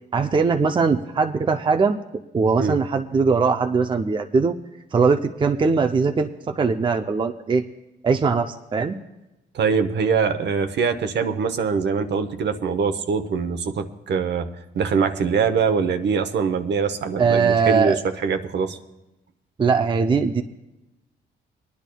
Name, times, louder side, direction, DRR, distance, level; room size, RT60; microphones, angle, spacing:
voice 1, 0.1-2.0 2.3-4.5 4.9-7.6 8.0-9.0 17.2-18.0 19.6-20.4, right 5 dB, 25° right, 6 dB, 0.5 m, -20 dB
voice 2, 9.5-14.5 14.7-18.8, right 5 dB, 60° right, 8 dB, 0.9 m, -23 dB
24.0 x 10.5 x 2.3 m, 0.97 s
cardioid pair, 90°, 20 cm